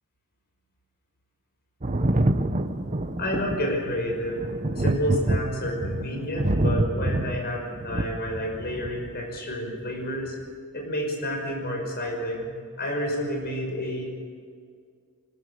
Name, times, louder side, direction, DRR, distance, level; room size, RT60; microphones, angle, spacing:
Thunder, 1.8-9.2 10.3-10.4, right 1 dB, 35° right, 0.9 m, -27 dB
voice 1, 3.2-4.4 4.8-10.4 10.7-12.5 12.8-14.1, equal, 45° left, 1 dB, 5.8 m, -29 dB
25.0 x 13.0 x 8.3 m, 2.1 s
head